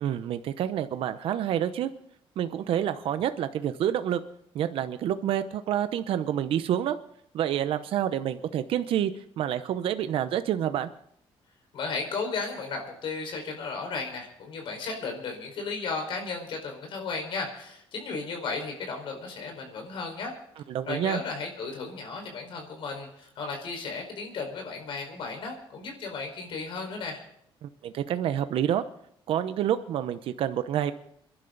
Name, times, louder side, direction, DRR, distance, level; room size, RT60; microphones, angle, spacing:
voice 1, 0.0-1.9 2.4-4.2 4.5-7.0 7.3-10.9 20.7-21.2 27.6-28.8 29.3-30.9, right 10 dB, 75° right, 10 dB, 0.8 m, -28 dB
voice 2, 11.7-20.4 20.9-27.2, left 4 dB, 65° left, 2 dB, 5.0 m, -35 dB
27.0 x 11.5 x 4.0 m, 0.72 s
cardioid pair, 130°, 10 cm